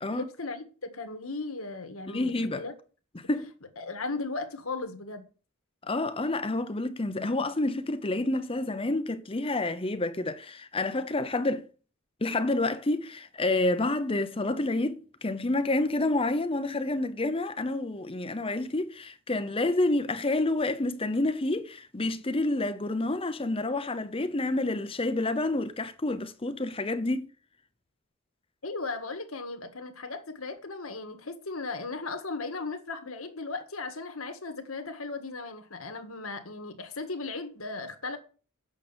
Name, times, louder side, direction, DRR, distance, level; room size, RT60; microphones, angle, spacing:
voice 1, 0.1-2.7 3.8-5.3 28.6-38.2, left 3 dB, 75° left, 1.8 m, -36 dB
voice 2, 2.1-2.6 3.1-3.5 5.9-11.7 12.2-27.3, left 2 dB, 25° left, 0.7 m, -29 dB
8.8 x 6.6 x 7.3 m
head